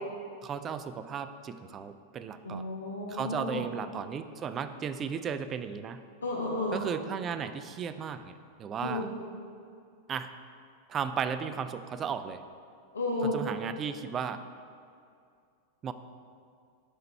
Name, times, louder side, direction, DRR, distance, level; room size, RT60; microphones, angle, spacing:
voice 1, 0.4-2.6 3.1-6.0 6.7-9.1 10.1-10.3 10.9-12.4 13.3-14.4 15.8-15.9, right 7 dB, 25° right, 11 dB, 0.3 m, -35 dB
voice 2, 2.4-3.6 6.2-6.8 8.8-9.1 12.9-13.4, left 2 dB, 70° left, -2 dB, 0.8 m, -32 dB
5.8 x 5.5 x 4.4 m, 2.3 s
figure-of-eight pair, 90°, 0 cm